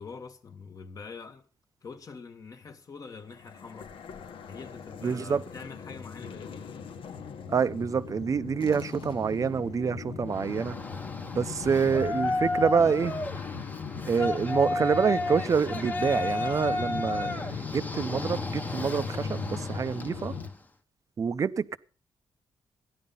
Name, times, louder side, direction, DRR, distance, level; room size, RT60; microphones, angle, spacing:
voice 1, 0.0-1.4 1.8-3.9 4.5-6.7, left 5 dB, 40° left, 1.5 m, -44 dB
sound 1, 3.3-20.5, left 6 dB, 80° left, 1.3 m, -39 dB
voice 2, 5.0-5.4 7.5-10.8 11.4-13.1 14.0-20.3 21.2-21.8, right 6 dB, 40° right, 0.6 m, -27 dB
Yell, 10.3-20.6, left 2 dB, 20° left, 1.0 m, -33 dB
14.0 x 10.5 x 5.5 m
wide cardioid pair, 150°, 9 cm